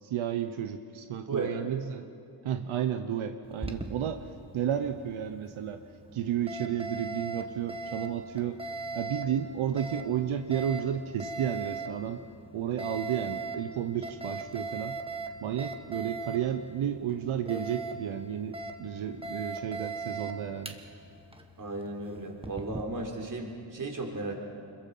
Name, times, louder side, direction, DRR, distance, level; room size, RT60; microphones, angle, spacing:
voice 1, 0.0-2.1 2.4-5.8 6.1-8.6 8.9-12.2 12.5-15.0 15.4-20.8, right 9 dB, 90° right, 8 dB, 0.9 m, -32 dB
Alarm, 3.4-22.8, right 3 dB, 10° right, 1.5 m, -40 dB
voice 2, 21.6-24.3, right 3 dB, 40° right, 1 dB, 3.7 m, -35 dB
26.5 x 22.0 x 5.5 m, 2.4 s
cardioid pair, 100°, 48 cm